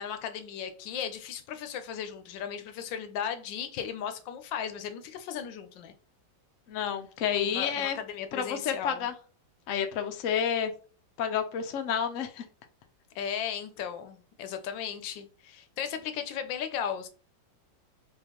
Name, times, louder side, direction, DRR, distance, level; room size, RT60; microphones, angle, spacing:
voice 1, 0.0-5.9 7.4-9.1 13.1-17.1, left 8 dB, 80° left, 1.3 m, -36 dB
voice 2, 6.7-8.0 8.3-9.1 9.7-10.7 11.2-12.4, left 8 dB, 65° left, 0.8 m, -30 dB
4.2 x 3.7 x 2.9 m
omnidirectional pair, 2.0 m